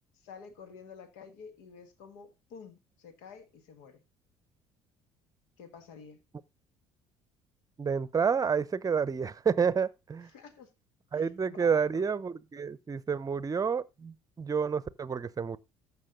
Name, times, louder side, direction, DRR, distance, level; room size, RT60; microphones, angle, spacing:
voice 1, 0.1-4.0 5.6-6.2 10.3-10.7 11.1-12.1, left 6 dB, 70° left, 1.6 m, -50 dB
voice 2, 7.8-10.3 11.1-15.6, right 6 dB, 25° right, 0.8 m, -29 dB
14.0 x 5.6 x 3.8 m
hypercardioid pair, 55°, 13 cm